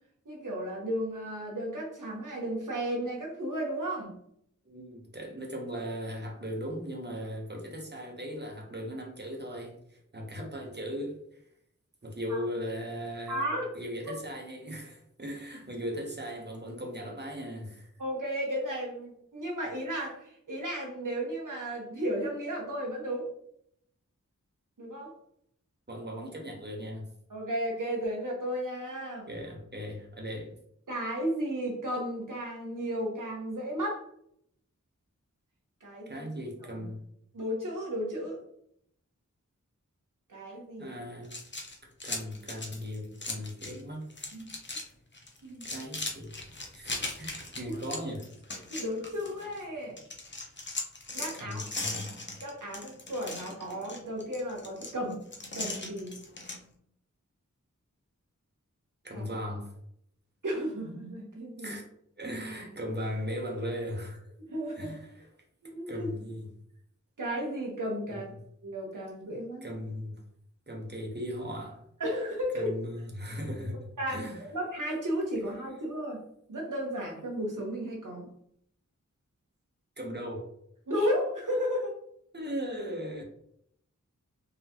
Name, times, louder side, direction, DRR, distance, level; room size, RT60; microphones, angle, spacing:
voice 1, 0.2-4.1 12.3-12.4 13.3-13.7 18.0-23.3 24.8-25.1 27.3-29.3 30.9-34.0 35.8-36.3 36.7-36.9 37.3-38.4 40.3-40.9 44.3-44.5 45.4-45.7 47.6-47.8 48.7-50.0 51.1-51.6 52.4-55.3 55.5-56.2 59.1-59.2 60.4-61.8 64.5-65.0 65.6-66.1 67.2-68.3 68.6-69.7 72.0-72.7 74.0-76.2 76.5-78.3 80.9-81.9, equal, 80° right, -1 dB, 1.1 m, -34 dB
voice 2, 4.6-11.4 12.0-13.4 13.7-17.9 25.9-27.1 29.3-30.5 36.1-37.0 40.8-41.4 42.0-44.1 45.6-46.3 46.7-48.2 51.4-52.2 59.0-59.7 61.6-61.8 62.2-64.2 64.8-65.3 65.9-66.5 68.1-68.2 69.6-70.2 70.7-71.8 72.5-74.4 80.0-80.5 82.3-83.2, equal, 35° right, 0 dB, 1.0 m, -38 dB
sound 1, 41.2-43.8 44.1-44.9 45.1-49.6 50.0-56.6, left 2 dB, 35° left, 0.7 m, -39 dB
3.9 x 3.1 x 2.8 m, 0.70 s
wide cardioid pair, 65°, 31 cm